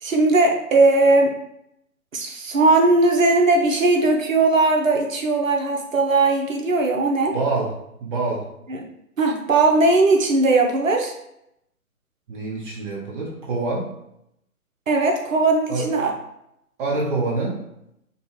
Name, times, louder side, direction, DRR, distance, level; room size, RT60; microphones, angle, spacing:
voice 1, 0.0-1.3 2.1-7.3 8.7-8.8 9.2-11.1 14.9-16.1, right 3 dB, 60° right, 2 dB, 1.0 m, -18 dB
voice 2, 7.3-7.7 8.0-8.5 12.3-13.9 15.7-15.9 16.8-17.6, right 3 dB, 35° right, -3 dB, 1.1 m, -25 dB
5.2 x 2.3 x 3.1 m, 0.79 s
figure-of-eight pair, 130°, 44 cm